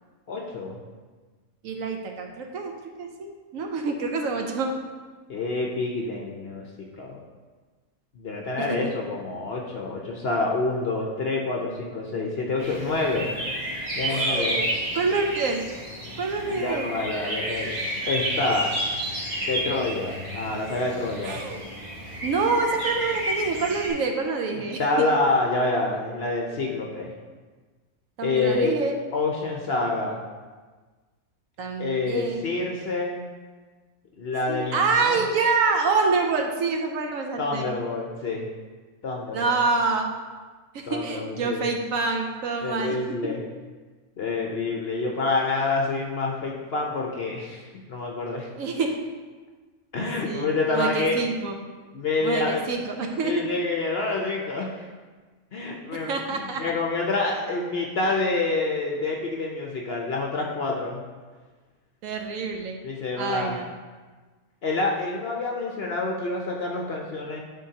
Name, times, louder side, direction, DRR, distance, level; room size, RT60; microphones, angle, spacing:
voice 1, 0.3-0.8 5.3-6.7 6.9-7.2 8.2-13.3 14.0-14.6 16.4-17.7 18.1-18.7 19.5-21.4 24.8-27.1 28.2-28.7 29.1-30.2 31.8-33.2 34.2-35.2 37.4-38.5 39.0-39.5 40.9-41.6 42.6-43.4 44.2-48.5 49.9-51.2 51.9-52.6 53.2-54.8 55.5-61.0 62.8-63.6 64.6-67.4, left 3 dB, 55° left, -1 dB, 0.7 m, -27 dB
voice 2, 1.6-4.7 8.6-8.9 14.1-14.7 14.9-15.6 16.2-16.9 21.2-21.6 22.2-25.1 28.2-29.0 31.6-32.5 34.5-37.7 39.3-40.1 40.7-43.0 43.2-43.3 48.5-49.0 50.2-51.6 52.2-53.5 55.9-56.6 62.0-62.8 63.2-63.7, right 4 dB, 70° right, 3 dB, 1.0 m, -27 dB
sound 1, 12.6-23.9, right 1 dB, 30° right, 1.7 m, -31 dB
10.0 x 3.8 x 2.8 m, 1.4 s
omnidirectional pair, 1.6 m